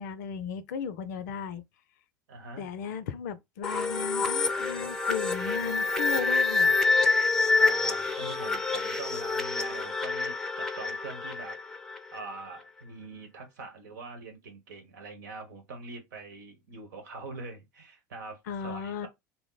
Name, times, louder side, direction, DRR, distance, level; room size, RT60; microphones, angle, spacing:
voice 1, 0.0-1.6 2.6-6.8 18.5-19.1, left 7 dB, 70° left, 0.5 m, -35 dB
voice 2, 2.3-2.7 7.5-11.6 12.1-19.1, right 3 dB, 75° right, 1.1 m, -43 dB
sound 1, 3.6-12.2, left 3 dB, 5° left, 0.6 m, -27 dB
2.8 x 2.0 x 3.9 m
hypercardioid pair, 85°, 10 cm